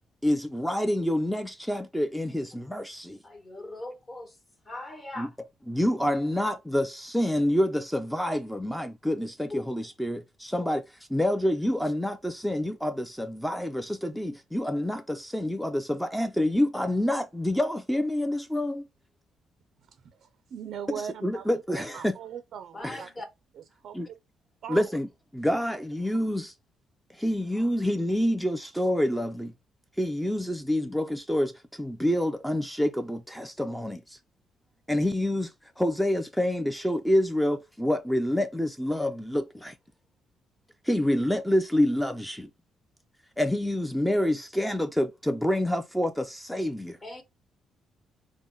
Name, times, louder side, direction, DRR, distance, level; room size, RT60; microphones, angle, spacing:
voice 1, 0.2-3.2 5.2-5.3 5.7-18.9 20.9-22.1 22.8-23.1 23.9-24.1 24.7-26.5 27.1-29.5 30.0-34.2 34.9-39.7 40.8-42.5 43.4-47.0, left 1 dB, 5° left, 0.4 m, -27 dB
voice 2, 3.2-4.4 4.6-5.3 9.5-9.6 22.7-23.3 47.0-47.2, left 2 dB, 30° left, 1.1 m, -39 dB
voice 3, 20.2-21.5 21.7-23.1 23.6-23.9 24.6-24.9, right 8 dB, 65° right, 0.4 m, -39 dB
3.7 x 2.0 x 3.7 m
cardioid pair, 90°, 0 cm